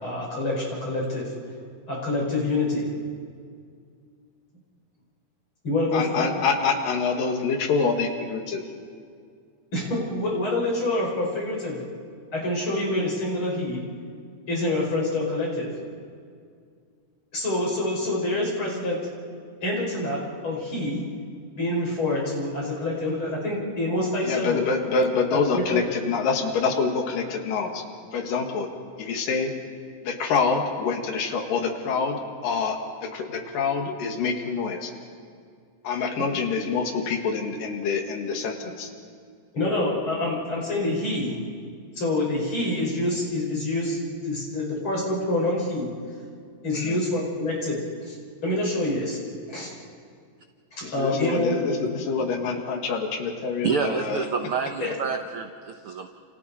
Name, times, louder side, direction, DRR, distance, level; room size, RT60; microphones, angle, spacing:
voice 1, 0.0-1.3 1.9-2.9 5.6-6.3 9.7-11.8 12.3-13.8 14.5-15.7 17.3-19.0 19.6-21.0 21.6-24.6 25.5-25.6 39.5-41.3 41.9-44.0 44.2-45.9 46.6-48.1 48.4-49.2 49.5-49.7 50.7-51.6 54.8-54.9, left 2 dB, 35° left, -3 dB, 6.1 m, -26 dB
voice 2, 5.9-8.6 24.2-27.8 28.1-28.7 29.0-29.5 30.0-32.2 32.4-34.9 35.8-38.9 46.7-47.0 50.8-54.3, left 5 dB, 85° left, 3 dB, 3.4 m, -26 dB
voice 3, 53.6-56.1, right 6 dB, 80° right, 5 dB, 1.2 m, -28 dB
29.5 x 28.5 x 4.3 m, 2.2 s
omnidirectional pair, 3.8 m